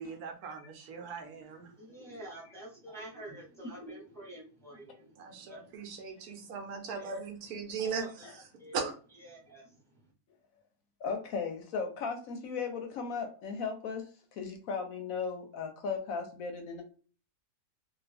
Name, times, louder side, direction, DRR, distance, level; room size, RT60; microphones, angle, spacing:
voice 1, 0.0-1.7 5.2-8.1 8.7-8.9, right 5 dB, 70° right, 1.1 m, -38 dB
voice 2, 1.0-7.2 7.8-8.3 8.6-8.9 9.2-10.1, right 1 dB, ahead, 0.9 m, -49 dB
voice 3, 11.0-16.8, left 5 dB, 70° left, 0.9 m, -36 dB
2.6 x 2.4 x 3.3 m
omnidirectional pair, 1.7 m